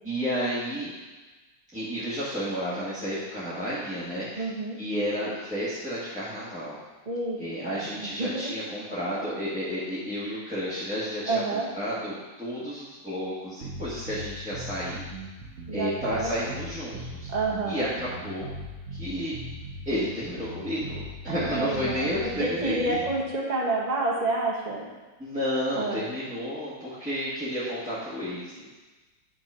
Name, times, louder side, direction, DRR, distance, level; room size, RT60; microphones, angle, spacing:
voice 1, 0.0-0.9 1.7-4.5 4.8-6.8 7.4-15.0 15.7-17.3 17.7-18.5 18.9-19.3 19.8-22.8 25.2-28.7, equal, 5° right, -12 dB, 1.3 m, -31 dB
voice 2, 4.4-4.8 7.1-8.5 11.3-11.7 15.7-16.3 17.3-17.9 21.3-24.9 25.7-26.1, right 2 dB, 30° right, -3 dB, 1.0 m, -29 dB
sound 1, 13.6-23.2, right 1 dB, 50° right, 1.2 m, -39 dB
9.2 x 3.9 x 5.5 m, 1.2 s
omnidirectional pair, 2.1 m